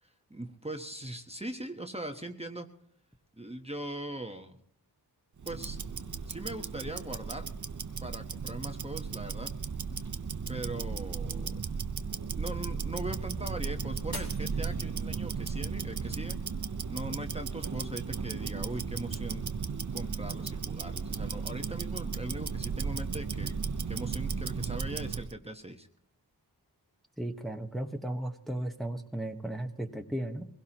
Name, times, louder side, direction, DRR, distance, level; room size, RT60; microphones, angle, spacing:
voice 1, 0.0-2.7 3.4-4.6 5.4-5.8 6.3-7.5 8.0-9.5 10.5-11.5 12.3-16.4 16.9-19.4 19.9-23.6 23.9-25.9, right 1 dB, 15° right, 4 dB, 1.1 m, -40 dB
Tick-tock, 5.4-25.3, right 5 dB, 50° right, 0.8 m, -35 dB
Shatter, 14.1-15.4 15.9-16.4 16.9-17.0, left 2 dB, 75° left, 3.5 m, -45 dB
voice 2, 27.2-30.5, right 1 dB, ahead, 4 dB, 1.2 m, -35 dB
22.5 x 17.0 x 3.0 m, 0.66 s
cardioid pair, 45°, 39 cm